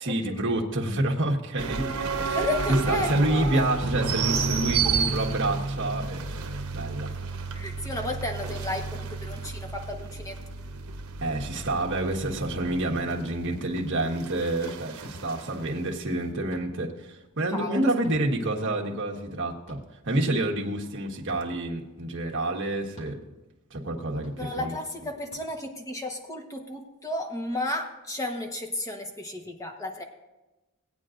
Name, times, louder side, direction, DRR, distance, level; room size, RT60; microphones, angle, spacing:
voice 1, 0.0-1.9 2.1-2.4 2.9-7.4 11.2-19.8 20.0-23.2 23.7-24.7, right 1 dB, 55° right, -1 dB, 1.5 m, -28 dB
sound 1, 1.6-15.4, right 4 dB, 80° right, 1.0 m, -31 dB
voice 2, 2.3-3.6 4.8-4.9 7.5-10.4 14.6-14.8 17.5-17.9 24.4-30.0, left 1 dB, 15° left, 3 dB, 1.1 m, -33 dB
sound 2, 13.7-13.9 15.0-15.2 16.5-16.7 18.0-18.2 19.7-19.8 21.2-21.4 22.9-23.1 24.2-24.4 25.3-25.4, equal, 35° left, 2.4 m, -46 dB
18.5 x 9.0 x 2.6 m, 1.1 s
head